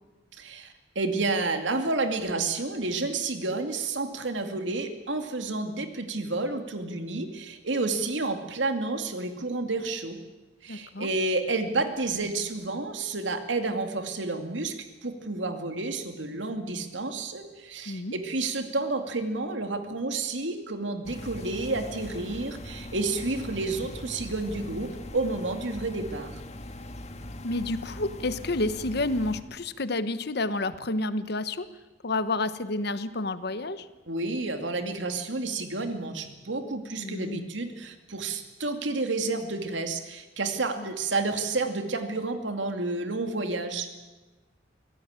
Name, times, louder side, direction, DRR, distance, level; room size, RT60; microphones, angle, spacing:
voice 1, 0.4-10.2 10.6-14.7 15.0-26.4 34.1-43.9, right 3 dB, 85° right, 6 dB, 2.4 m, -30 dB
voice 2, 10.7-11.1 17.9-18.1 27.4-31.7 32.0-33.9 37.0-37.5 40.8-40.9, left 2 dB, 60° left, 13 dB, 1.2 m, -30 dB
sound 1, 21.0-29.4, left 1 dB, 40° left, 2.0 m, -41 dB
24.5 x 17.0 x 8.9 m, 1.2 s
head